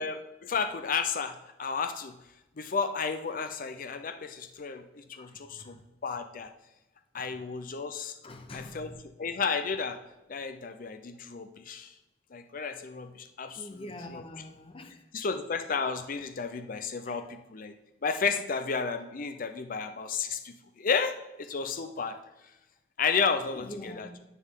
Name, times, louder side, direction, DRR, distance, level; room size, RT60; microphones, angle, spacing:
voice 1, 0.0-2.1 2.6-5.7 6.0-6.5 7.1-8.1 8.5-8.9 9.2-10.0 10.3-11.9 12.3-13.6 14.1-14.2 15.1-17.7 18.0-22.2 23.0-24.1, left 5 dB, 45° left, 0.5 m, -32 dB
voice 2, 5.2-5.8 7.1-7.7 8.2-9.1 13.5-15.1 17.0-17.3 23.5-24.2, left 1 dB, 30° left, 0.9 m, -45 dB
9.9 x 9.3 x 3.7 m
head